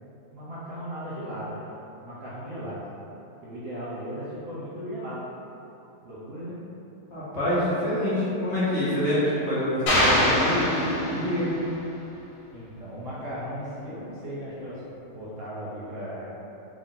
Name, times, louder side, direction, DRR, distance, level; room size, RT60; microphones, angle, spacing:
voice 1, 0.3-1.7 2.0-2.8 3.4-5.2 6.0-6.6 12.5-16.3, equal, 60° right, -9 dB, 1.0 m, -36 dB
voice 2, 7.1-11.5, left 1 dB, 50° left, -11 dB, 1.1 m, -26 dB
sound 1, 9.9-11.6, left 1 dB, 80° left, 1.4 m, -23 dB
3.6 x 2.6 x 3.7 m, 2.9 s
omnidirectional pair, 1.8 m